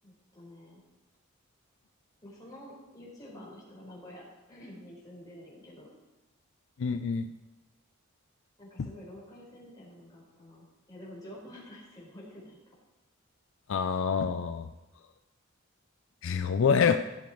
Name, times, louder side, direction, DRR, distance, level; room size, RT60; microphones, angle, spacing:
voice 1, 0.0-0.8 2.2-5.9 8.6-12.7, left 1 dB, 20° left, -6 dB, 4.9 m, -49 dB
voice 2, 6.8-7.3 13.7-14.7 16.2-17.0, left 6 dB, 65° left, 9 dB, 0.4 m, -26 dB
16.0 x 7.0 x 4.5 m, 1.1 s
head